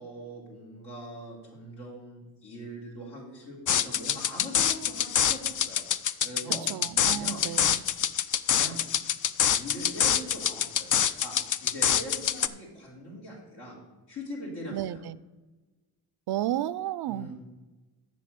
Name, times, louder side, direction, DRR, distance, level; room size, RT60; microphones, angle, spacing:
voice 1, 0.0-5.8 6.2-6.6 7.1-7.4 8.5-8.8 9.5-10.9 11.2-13.8 14.1-15.0 17.0-17.3, equal, 85° left, -6 dB, 3.9 m, -41 dB
sound 1, 3.7-12.5, left 9 dB, 50° left, 0.5 m, -26 dB
voice 2, 6.7-7.8 14.7-15.2 16.3-17.3, right 13 dB, 75° right, 18 dB, 0.5 m, -32 dB
7.5 x 6.2 x 7.7 m, 1.2 s
cardioid pair, 65°, 40 cm